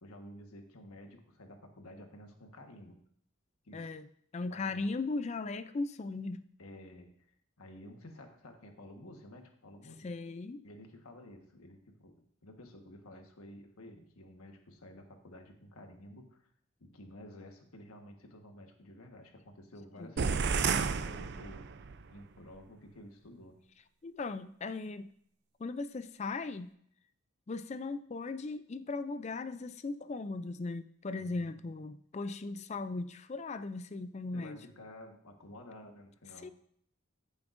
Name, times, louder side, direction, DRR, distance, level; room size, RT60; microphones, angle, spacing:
voice 1, 0.0-3.0 3.6-3.9 4.5-4.9 6.6-7.3 7.6-10.1 10.6-16.5 16.8-21.8 22.1-23.6 31.2-31.5 34.3-36.5, left 1 dB, 85° left, 4 dB, 1.4 m, -52 dB
voice 2, 3.7-4.1 4.3-6.4 10.0-10.6 20.0-20.1 24.0-25.1 25.6-26.7 27.5-34.6 36.4-36.5, left 3 dB, 30° left, 12 dB, 0.3 m, -38 dB
sound 1, 20.2-22.0, right 5 dB, 50° right, 0.4 m, -31 dB
14.0 x 7.0 x 2.6 m, 0.67 s
head